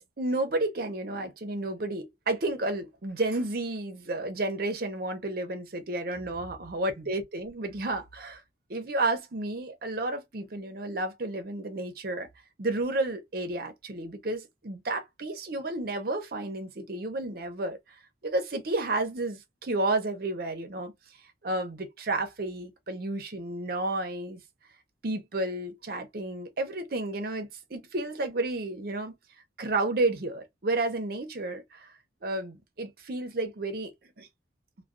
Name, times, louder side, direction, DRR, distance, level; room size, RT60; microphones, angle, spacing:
voice 1, 0.0-8.4 8.7-12.3 12.6-17.8 18.2-20.9 21.4-24.4 25.0-29.1 29.6-31.9 32.2-33.9 34.2-34.3, right 2 dB, 55° right, 0.6 m, -31 dB
2.3 x 2.2 x 2.4 m
head